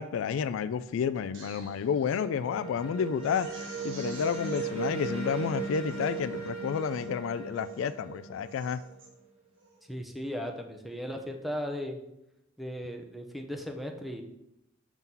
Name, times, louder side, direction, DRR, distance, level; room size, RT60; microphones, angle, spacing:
voice 1, 0.0-3.5 3.8-8.8, left 7 dB, 80° left, 13 dB, 0.3 m, -30 dB
Crying sobbing, 1.1-2.2 2.6-2.7 3.2-4.7 5.3-5.4 5.8-6.2 6.7-7.1 7.5-8.0 8.3-9.1 9.6-9.8, right 3 dB, 70° right, 1.4 m, -51 dB
sound 1, 1.4-9.2, right 5 dB, 30° right, 1.2 m, -37 dB
voice 2, 9.9-12.0 12.6-14.2, equal, ahead, 3 dB, 0.6 m, -37 dB
6.0 x 3.8 x 5.5 m, 0.85 s
head